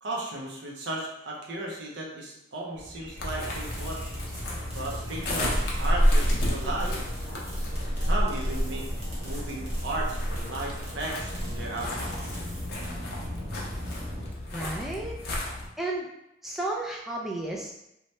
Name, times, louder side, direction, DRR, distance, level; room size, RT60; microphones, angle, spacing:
voice 1, 0.0-4.0 4.7-7.0 8.0-8.9 9.2-12.4, right 2 dB, 70° right, -2 dB, 0.6 m, -35 dB
sound 1, 2.7-14.3, equal, 90° right, 1.1 m, -41 dB
sound 2, 3.2-15.7, equal, 55° left, 0.6 m, -30 dB
sound 3, 3.2-13.1, right 1 dB, 35° right, 0.9 m, -47 dB
voice 2, 14.5-15.2 15.8-16.1 16.4-17.7, right 2 dB, ahead, -3 dB, 0.3 m, -32 dB
2.8 x 2.2 x 3.1 m, 0.84 s
head